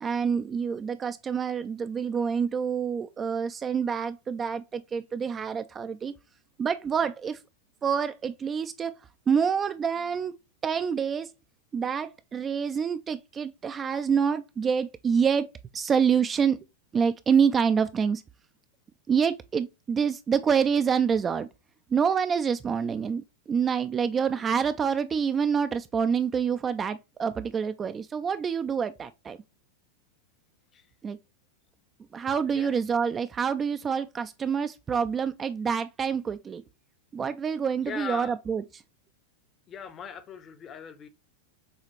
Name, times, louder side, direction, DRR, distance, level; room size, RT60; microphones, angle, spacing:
voice 1, 0.0-6.1 6.6-7.4 7.8-9.0 9.3-10.3 10.6-11.3 11.7-16.6 16.9-18.2 19.1-21.5 21.9-29.4 31.0-31.2 32.1-36.6 37.1-38.6, right 6 dB, 20° right, 0.3 m, -27 dB
voice 2, 37.8-38.4 39.7-41.1, left 7 dB, 25° left, 0.7 m, -39 dB
6.7 x 2.4 x 3.0 m
figure-of-eight pair, 90°, 0 cm